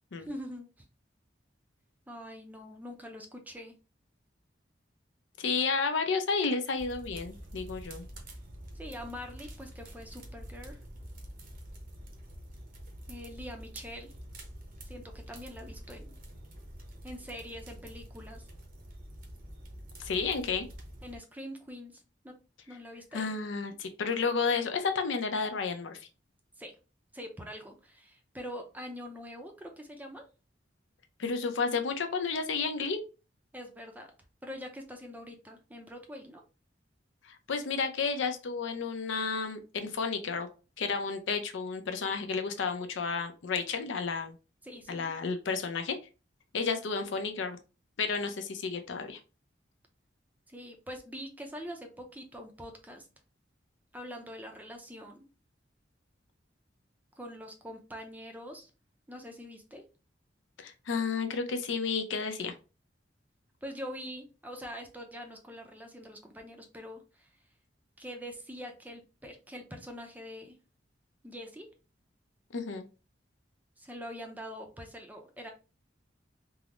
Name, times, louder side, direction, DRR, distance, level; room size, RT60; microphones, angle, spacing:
voice 1, 0.2-0.7 2.1-3.7 8.7-10.8 13.1-14.1 14.9-16.2 17.0-18.4 21.0-22.3 22.7-23.3 26.6-26.7 27.1-30.2 33.5-34.1 34.4-36.4 44.6-45.1 50.5-53.1 53.9-55.2 57.2-58.7 59.1-59.8 63.6-67.3 68.0-70.6 71.2-71.7 73.8-75.5, equal, 10° right, 3 dB, 0.5 m, -44 dB
voice 2, 5.4-8.1 20.0-20.7 23.1-26.0 31.2-33.0 37.2-40.5 40.8-44.3 44.9-46.0 46.5-47.6 48.0-49.2 60.6-62.5 72.5-72.8, left 5 dB, 75° left, 6 dB, 0.5 m, -31 dB
sound 1, 6.8-21.2, equal, 50° right, 0.7 m, -47 dB
3.6 x 2.0 x 2.9 m, 0.32 s
head